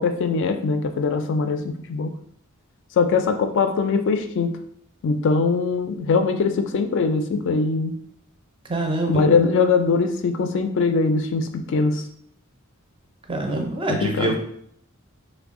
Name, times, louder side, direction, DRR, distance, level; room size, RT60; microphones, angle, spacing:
voice 1, 0.0-2.1 3.0-4.5 5.0-7.9 9.1-12.0 14.0-14.3, left 4 dB, 55° left, 7 dB, 0.3 m, -21 dB
voice 2, 8.7-9.2 13.3-14.4, right 2 dB, 25° right, 2 dB, 0.5 m, -25 dB
3.3 x 2.1 x 3.6 m, 0.67 s
head